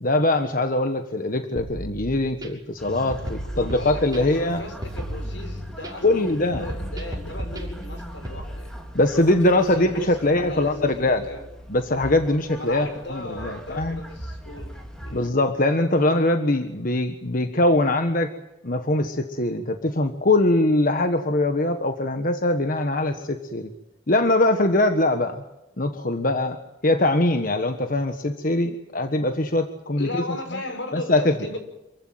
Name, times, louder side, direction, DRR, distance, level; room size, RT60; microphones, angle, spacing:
voice 1, 0.0-4.6 6.0-6.7 8.9-11.3 11.7-14.0 15.1-18.3 18.6-23.7 24.1-25.4 25.8-30.2 30.5-30.6 30.9-31.4, left 2 dB, 50° left, 7 dB, 1.4 m, -22 dB
sound 1, 1.6-2.5 3.1-4.5 4.8-5.9 6.5-8.4, equal, 20° right, 6.6 m, -34 dB
sound 2, 2.8-15.3, equal, 5° left, 3.4 m, -40 dB
voice 2, 3.5-8.7 9.4-11.5 12.6-15.2 29.9-31.6, left 2 dB, 80° left, 6 dB, 5.8 m, -36 dB
27.5 x 15.0 x 9.3 m, 0.96 s
head